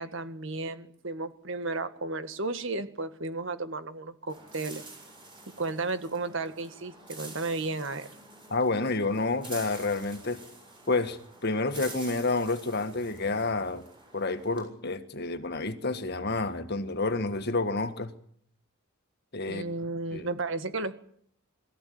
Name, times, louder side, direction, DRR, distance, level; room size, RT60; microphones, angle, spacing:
voice 1, 0.0-4.9 5.6-8.1 19.5-20.9, right 3 dB, 60° right, 10 dB, 1.7 m, -33 dB
sound 1, 4.3-14.6, right 3 dB, 25° right, 7.3 m, -48 dB
voice 2, 8.5-10.4 10.9-13.8 14.1-18.1 19.3-19.6 20.1-20.3, left 3 dB, 50° left, 9 dB, 1.7 m, -29 dB
22.5 x 15.0 x 9.5 m, 0.63 s
head